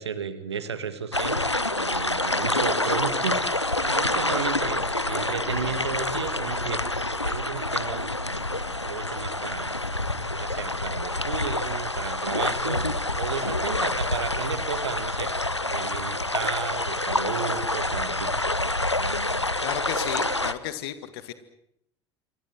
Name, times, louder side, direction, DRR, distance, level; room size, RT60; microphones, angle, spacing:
voice 1, 0.0-1.4 1.8-3.5 3.8-6.8 7.2-9.7 10.4-12.8 13.2-15.3 15.6-18.3 19.1-19.4, right 6 dB, 75° right, 13 dB, 1.8 m, -33 dB
sound 1, 1.1-20.5, left 2 dB, 90° left, 1.0 m, -27 dB
voice 2, 19.6-21.3, left 12 dB, 60° left, 12 dB, 2.0 m, -33 dB
27.5 x 23.5 x 7.7 m, 0.75 s
figure-of-eight pair, 65°, 14 cm